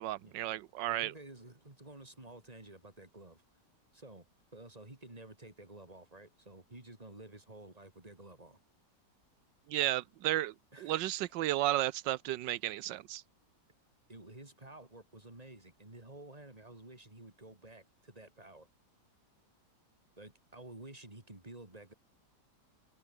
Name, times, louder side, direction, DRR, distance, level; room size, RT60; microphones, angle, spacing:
voice 1, 0.0-1.1 9.7-13.2, right 14 dB, 90° right, 1.4 m, -33 dB
voice 2, 0.8-3.4 3.9-4.3 4.5-8.6 10.7-11.0 14.1-18.7 20.2-21.9, right 2 dB, 20° right, 3.8 m, -52 dB
omnidirectional pair, 1.9 m